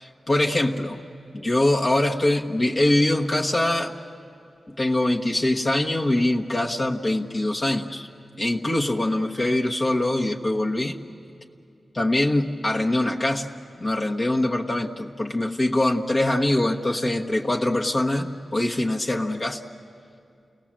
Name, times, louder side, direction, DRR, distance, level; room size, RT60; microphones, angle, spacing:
voice 1, 0.3-1.0 1.3-3.9 4.8-8.1 8.4-11.0 11.9-13.5 13.8-19.6, left 1 dB, 40° left, 1 dB, 1.2 m, -23 dB
30.0 x 18.5 x 7.5 m, 2.4 s
wide cardioid pair, 85°, 0 cm